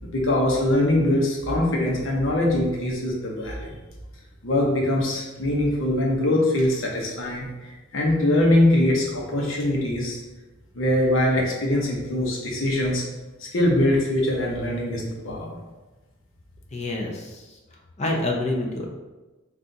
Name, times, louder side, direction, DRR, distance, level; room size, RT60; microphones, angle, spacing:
voice 1, 0.0-3.7 4.4-10.2 10.7-13.0 13.4-15.5, left 1 dB, 75° left, -2 dB, 0.8 m, -22 dB
voice 2, 16.7-17.4 18.0-18.9, left 2 dB, 35° left, 0 dB, 0.5 m, -27 dB
4.1 x 2.5 x 3.8 m, 1.2 s
head